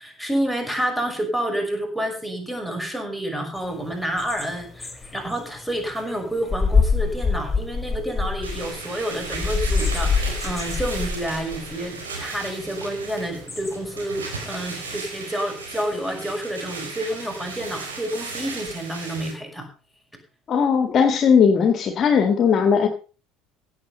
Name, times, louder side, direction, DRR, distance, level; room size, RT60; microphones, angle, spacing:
voice 1, 0.0-19.7, right 1 dB, 5° right, 3 dB, 5.8 m, -29 dB
sound 1, 3.6-14.9, left 5 dB, 15° left, 3.9 m, -27 dB
sound 2, 8.4-19.3, right 3 dB, 75° right, 4.4 m, -35 dB
voice 2, 20.5-22.9, left 6 dB, 40° left, 7 dB, 1.8 m, -18 dB
16.0 x 8.0 x 5.4 m, 0.37 s
figure-of-eight pair, 65°, 0 cm